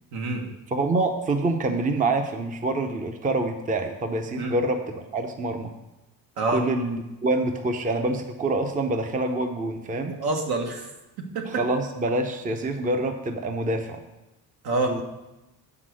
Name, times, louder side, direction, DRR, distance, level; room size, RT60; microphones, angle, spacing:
voice 1, 0.1-0.4 4.4-4.5 6.4-6.6 10.1-10.9 11.2-11.4 14.6-15.0, right 2 dB, 75° right, 2 dB, 1.6 m, -27 dB
voice 2, 0.7-5.7 6.5-10.2 11.5-14.0 14.9-15.0, right 2 dB, 20° right, 6 dB, 0.6 m, -26 dB
8.1 x 5.9 x 6.2 m, 1.0 s
cardioid pair, 135°, 38 cm